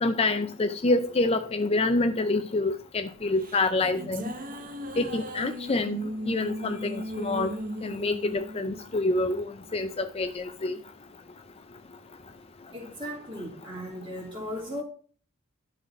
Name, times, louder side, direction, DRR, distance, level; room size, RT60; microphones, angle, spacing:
voice 1, 0.0-4.2 5.0-7.5 7.8-9.5 9.7-10.8, left 2 dB, 25° left, 0.4 m, -27 dB
sound 1, 3.2-9.7, right 1 dB, 40° right, 1.0 m, -37 dB
voice 2, 12.7-14.8, left 1 dB, 25° right, 3.0 m, -37 dB
11.5 x 4.0 x 6.0 m
head